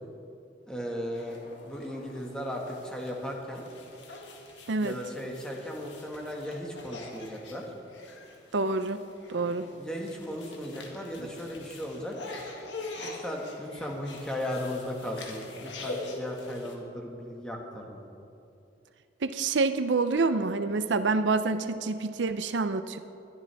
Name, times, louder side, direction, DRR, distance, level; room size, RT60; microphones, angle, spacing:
voice 1, 0.7-1.4 1.6-3.6 4.8-7.6 9.8-12.1 13.0-18.0, equal, 5° left, -1 dB, 1.8 m, -36 dB
sound 1, 1.1-16.7, left 2 dB, 85° left, 1.8 m, -44 dB
voice 2, 8.5-9.0 9.3-9.7 19.2-23.0, right 3 dB, 80° right, 10 dB, 0.6 m, -27 dB
20.5 x 12.5 x 3.5 m, 2.7 s
head